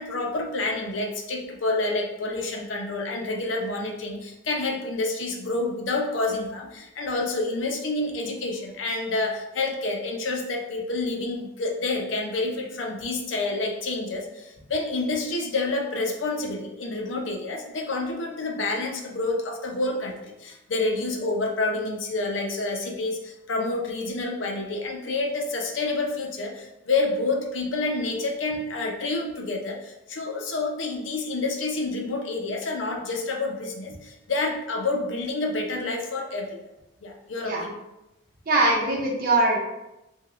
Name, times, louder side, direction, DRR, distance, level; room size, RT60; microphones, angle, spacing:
voice 1, 0.0-36.6 37.0-37.7, left 2 dB, 85° left, 1 dB, 0.6 m, -28 dB
voice 2, 38.5-39.6, right 2 dB, 50° right, -2 dB, 0.7 m, -22 dB
3.5 x 2.3 x 3.0 m, 0.93 s
head